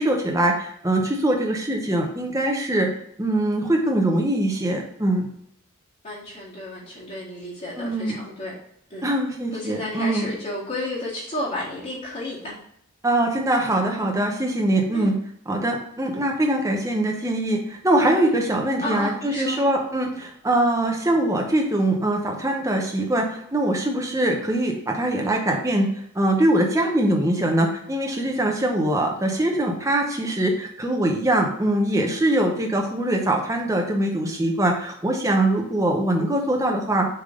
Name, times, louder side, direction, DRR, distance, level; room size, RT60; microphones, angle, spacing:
voice 1, 0.0-2.9 3.2-5.3 7.8-8.2 9.0-10.3 13.0-15.2 15.5-37.1, right 1 dB, 15° right, 1 dB, 0.9 m, -22 dB
voice 2, 6.0-8.6 8.9-9.1 9.5-12.5 14.9-15.1 18.0-18.1 18.8-19.6, left 1 dB, 35° left, -10 dB, 1.9 m, -32 dB
6.7 x 3.7 x 3.8 m, 0.71 s
head